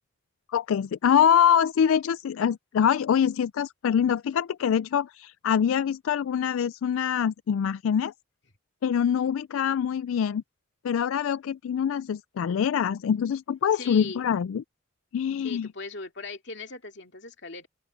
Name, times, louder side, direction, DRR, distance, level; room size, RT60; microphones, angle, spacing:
voice 1, 0.5-8.1 8.8-10.4 10.8-14.6 15.1-15.7, left 8 dB, 90° left, 0.3 m, -24 dB
voice 2, 13.7-14.2 15.4-17.7, left 3 dB, 60° left, 2.5 m, -39 dB
open air
head